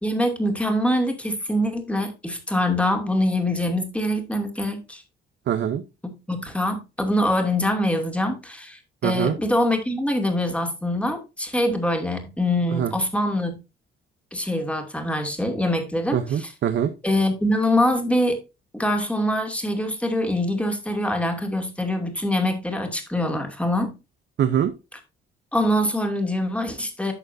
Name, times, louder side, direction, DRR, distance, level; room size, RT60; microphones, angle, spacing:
voice 1, 0.0-5.0 6.0-13.5 14.3-16.5 17.0-18.4 18.7-23.9 25.5-27.1, left 1 dB, 5° left, 2.5 m, -24 dB
voice 2, 5.5-5.8 9.0-9.3 12.7-12.9 16.1-16.9 24.4-24.7, right 9 dB, 65° right, 0.8 m, -23 dB
11.0 x 6.6 x 2.7 m
cardioid pair, 90°, 20 cm